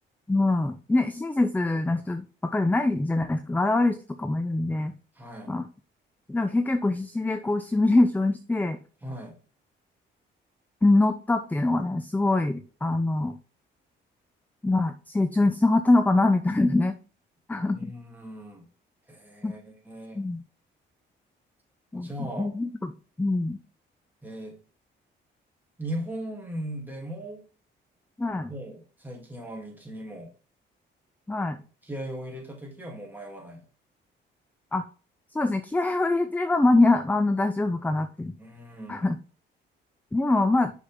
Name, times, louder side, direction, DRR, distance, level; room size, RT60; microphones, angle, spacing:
voice 1, 0.3-4.9 5.5-5.7 6.3-8.8 10.8-13.4 14.6-16.9 17.5-17.9 19.4-19.5 20.1-20.4 21.9-22.1 22.4-23.6 28.2-28.5 31.3-31.6 34.7-34.9 35.3-38.3 38.9-39.2 40.1-40.7, left 2 dB, 10° left, 10 dB, 0.5 m, -24 dB
voice 2, 5.2-5.6 9.0-9.4 17.7-18.6 19.1-20.2 21.9-22.5 24.2-24.6 25.8-27.4 28.5-30.3 31.8-33.6 38.4-39.1, right 1 dB, 10° right, 0 dB, 2.8 m, -38 dB
6.5 x 5.5 x 3.6 m, 0.37 s
cardioid pair, 90°, 20 cm